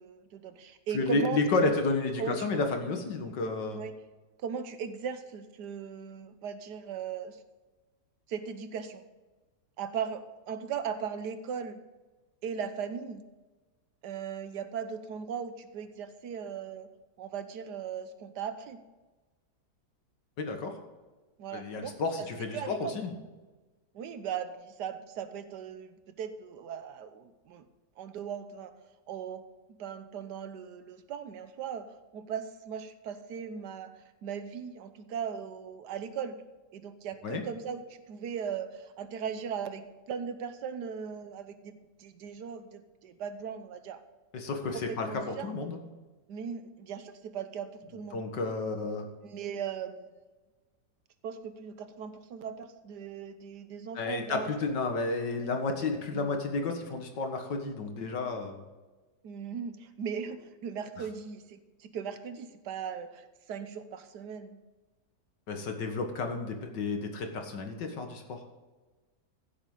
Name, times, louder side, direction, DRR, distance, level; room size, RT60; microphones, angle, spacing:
voice 1, 0.0-1.7 2.2-2.5 3.7-3.9 4.4-7.4 8.3-9.0 9.8-11.8 12.4-13.2 14.0-16.9 17.2-18.8 21.4-23.0 23.9-27.6 28.0-28.7 29.1-29.4 29.8-31.9 32.1-33.9 34.2-36.4 36.7-37.8 38.1-41.7 42.0-44.0 44.7-45.6 46.3-48.2 49.2-50.1 51.2-54.5 56.1-56.3 59.2-64.6, right 7 dB, 75° right, 10 dB, 1.5 m, -38 dB
voice 2, 0.9-3.8 20.4-20.7 21.5-23.1 37.2-37.4 44.3-45.8 48.1-49.1 53.9-58.6 65.5-68.4, left 3 dB, 85° left, 4 dB, 2.2 m, -31 dB
15.5 x 8.0 x 3.9 m, 1.2 s
omnidirectional pair, 1.8 m